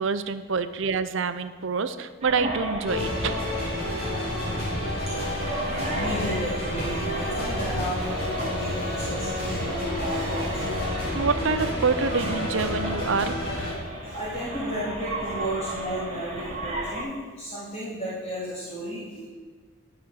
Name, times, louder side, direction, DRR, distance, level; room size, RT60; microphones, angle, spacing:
voice 1, 0.0-3.4 11.1-13.4, right 5 dB, 65° right, 11 dB, 0.6 m, -26 dB
sound 1, 2.2-17.0, right 1 dB, 30° right, 1.8 m, -34 dB
sound 2, 2.8-13.7, left 1 dB, 45° left, 3.3 m, -30 dB
voice 2, 5.9-10.7 14.0-19.3, equal, 30° left, -8 dB, 2.5 m, -34 dB
9.6 x 6.2 x 7.7 m, 1.4 s
head